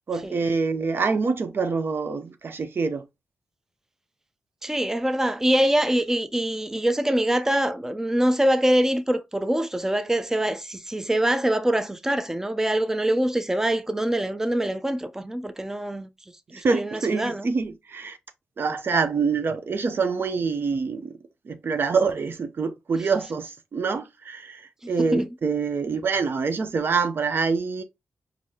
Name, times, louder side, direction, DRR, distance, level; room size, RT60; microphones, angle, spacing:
voice 1, 0.1-3.0 16.5-18.2 18.6-21.1 21.5-27.8, right 5 dB, 60° right, 0.6 m, -26 dB
voice 2, 4.6-16.1 16.5-17.5 25.0-25.3, right 1 dB, 10° right, 0.5 m, -24 dB
4.6 x 2.6 x 2.7 m
cardioid pair, 55°, 4 cm